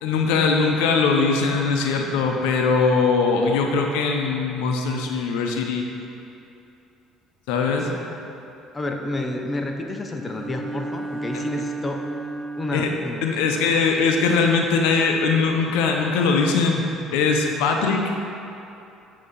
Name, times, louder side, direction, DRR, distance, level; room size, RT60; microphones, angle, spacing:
voice 1, 0.0-5.8 7.5-7.9 11.3-11.4 12.7-12.9 13.2-16.8 17.1-18.1, left 4 dB, 85° left, 2 dB, 0.5 m, -21 dB
voice 2, 7.7-8.2 8.7-12.0 12.6-13.2, left 2 dB, 20° left, 2 dB, 0.6 m, -30 dB
Bowed string instrument, 10.2-13.3, right 2 dB, 35° right, 0.4 m, -33 dB
8.4 x 2.8 x 5.2 m, 2.8 s
supercardioid pair, 85°, 0 cm